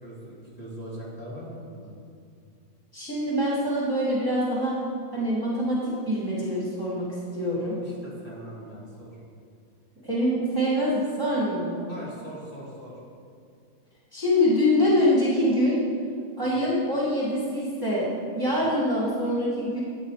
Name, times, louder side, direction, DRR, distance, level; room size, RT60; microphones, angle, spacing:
voice 1, 0.0-1.9 7.8-9.1 11.9-13.0 18.6-18.7, right 1 dB, 25° left, -7 dB, 2.7 m, -41 dB
voice 2, 2.9-4.8 5.1-7.1 7.3-7.8 10.0-11.9 14.1-15.8 16.4-18.1 18.4-19.8, equal, 15° right, -7 dB, 2.1 m, -24 dB
11.0 x 8.4 x 4.9 m, 2.3 s
omnidirectional pair, 1.5 m